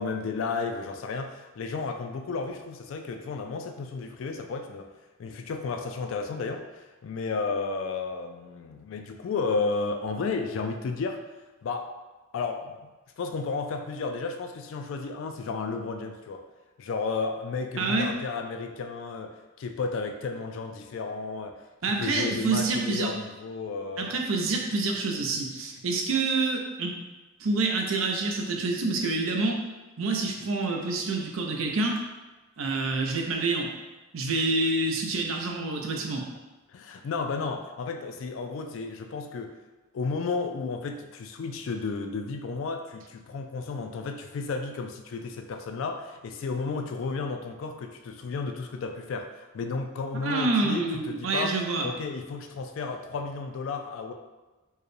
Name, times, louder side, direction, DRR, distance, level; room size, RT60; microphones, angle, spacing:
voice 1, 0.0-4.9 5.2-11.2 11.6-11.9 12.3-12.9 13.2-16.4 16.8-21.5 22.0-24.2 34.3-34.4 36.7-39.5 39.9-51.5 51.8-54.1, left 4 dB, 70° left, 4 dB, 0.3 m, -33 dB
voice 2, 17.8-18.1 21.8-23.1 24.0-26.9 27.4-29.6 30.0-32.0 32.6-33.7 34.1-36.3 50.2-51.9, right 3 dB, 80° right, 1 dB, 0.6 m, -27 dB
4.6 x 2.2 x 3.2 m, 1.2 s
head